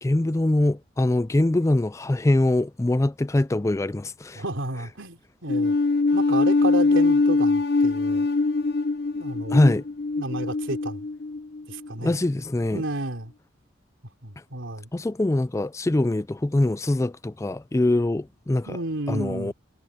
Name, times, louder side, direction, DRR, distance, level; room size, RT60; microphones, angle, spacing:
voice 1, 0.0-4.4 9.5-9.8 12.0-12.8 14.9-18.8 19.1-19.5, left 1 dB, 15° left, 0.3 m, -23 dB
voice 2, 4.3-5.7 6.1-8.3 9.1-9.6 10.2-11.1 11.7-12.2 12.7-13.3 14.2-14.9 18.7-19.5, right 2 dB, 75° right, 3.4 m, -31 dB
sound 1, 5.5-11.9, left 3 dB, 50° left, 0.8 m, -22 dB
head